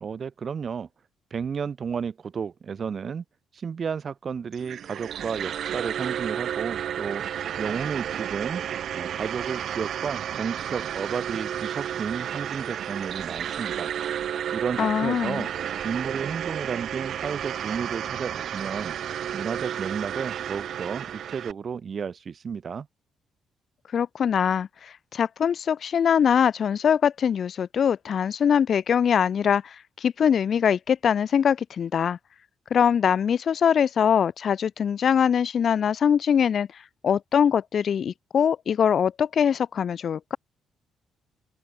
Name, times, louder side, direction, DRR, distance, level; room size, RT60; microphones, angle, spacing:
voice 1, 0.0-0.9 1.3-3.2 3.5-7.2 7.6-8.6 8.9-13.9 14.5-15.5 15.8-18.9 19.3-22.9, right 6 dB, 45° right, 2.9 m, -32 dB
sound 1, 4.5-21.5, right 9 dB, 65° right, 1.8 m, -32 dB
voice 2, 14.8-15.5 23.9-32.2 32.7-36.7 37.0-40.4, left 8 dB, 55° left, 1.5 m, -22 dB
open air
cardioid pair, 90°, 0 cm